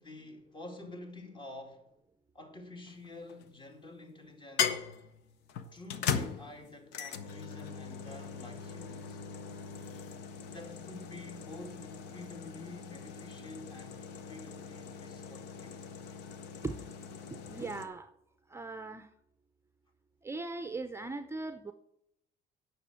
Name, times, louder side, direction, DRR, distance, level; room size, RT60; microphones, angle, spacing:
voice 1, 0.0-1.9 2.3-4.8 5.7-9.2 10.4-15.8, left 2 dB, 30° left, 2.3 m, -49 dB
sound 1, 2.9-3.5 4.6-17.9, left 7 dB, 90° left, 0.9 m, -39 dB
voice 2, 17.5-18.1 18.5-19.1 20.2-21.7, right 3 dB, 15° right, 0.6 m, -39 dB
9.6 x 6.3 x 7.8 m
cardioid pair, 110°, 17 cm